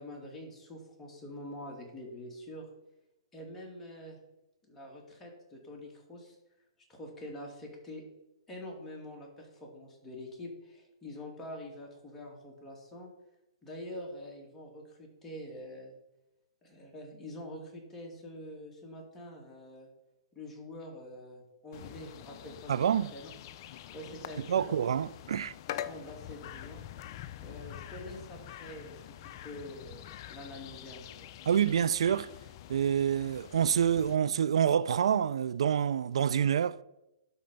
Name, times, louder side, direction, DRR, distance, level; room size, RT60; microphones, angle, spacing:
voice 1, 0.0-2.7 3.3-4.2 4.7-6.4 6.9-8.0 8.5-13.1 13.6-16.0 16.6-19.9 20.3-23.3 23.9-24.8 25.7-26.8 27.4-30.0 30.3-31.3, left 1 dB, 15° left, 2.4 m, -45 dB
sound 1, 21.7-34.2, left 12 dB, 45° left, 0.5 m, -45 dB
voice 2, 22.7-23.1 24.5-25.5 31.5-32.3 32.7-36.8, right 8 dB, 75° right, 0.3 m, -27 dB
12.0 x 4.3 x 5.3 m
hypercardioid pair, 130°, 3 cm